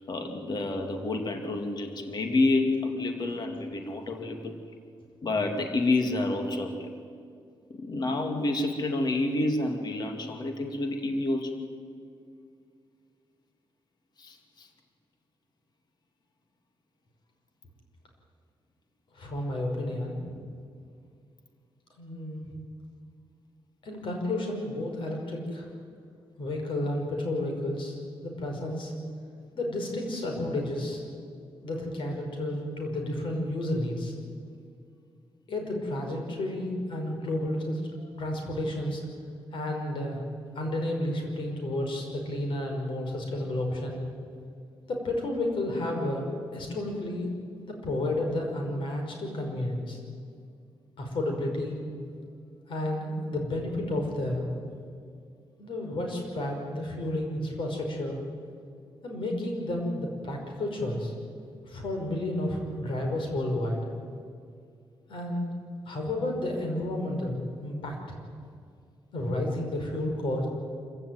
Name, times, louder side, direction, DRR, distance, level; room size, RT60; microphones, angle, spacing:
voice 1, 0.1-4.5 5.2-6.9 7.7-11.6 14.2-14.7, left 2 dB, 50° left, 5 dB, 2.4 m, -29 dB
voice 2, 19.1-20.2 22.0-22.4 23.8-25.7 26.4-28.0 28.2-28.9 29.5-31.0 31.6-34.1 35.5-37.8 38.2-39.0 39.5-40.2 40.6-44.0 44.9-47.3 47.7-50.0 51.0-51.8 52.7-54.5 55.6-58.2 59.0-61.1 61.6-63.8 65.1-65.5 65.9-68.2 69.1-70.5, left 1 dB, 65° left, 2 dB, 5.6 m, -31 dB
26.0 x 15.5 x 9.5 m, 2.3 s
cardioid pair, 110°, 9 cm